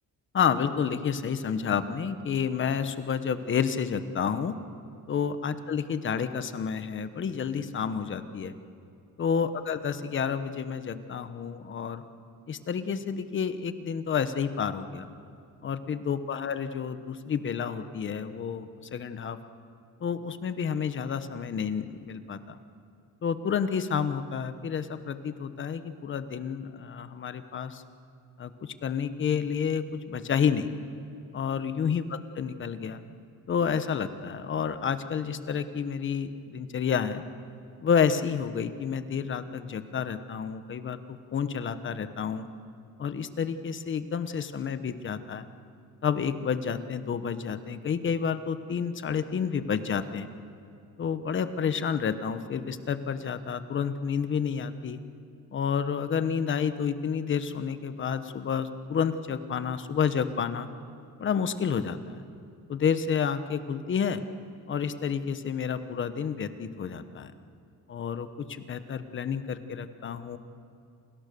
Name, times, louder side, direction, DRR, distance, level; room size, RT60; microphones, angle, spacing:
voice 1, 0.3-4.6 5.1-8.5 9.2-12.0 12.5-15.1 15.6-19.4 20.0-22.6 23.2-27.8 28.4-30.7 31.3-33.0 33.5-37.2 37.8-42.5 43.0-45.5 46.0-50.3 51.0-55.0 55.5-60.7 61.2-62.0 62.7-64.2 64.7-67.3 67.9-70.4, left 7 dB, 35° left, 11 dB, 1.1 m, -30 dB
29.0 x 27.5 x 6.9 m, 2.5 s
cardioid pair, 170°, 35 cm